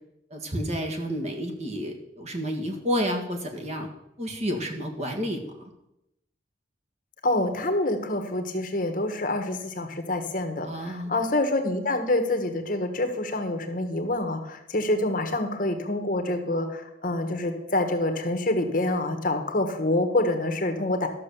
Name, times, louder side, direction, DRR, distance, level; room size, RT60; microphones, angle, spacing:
voice 1, 0.3-3.9 4.2-5.5 10.6-11.1, equal, 35° right, 3 dB, 1.7 m, -30 dB
voice 2, 7.2-21.1, left 2 dB, 45° left, 5 dB, 1.2 m, -26 dB
12.5 x 6.5 x 6.9 m, 0.87 s
head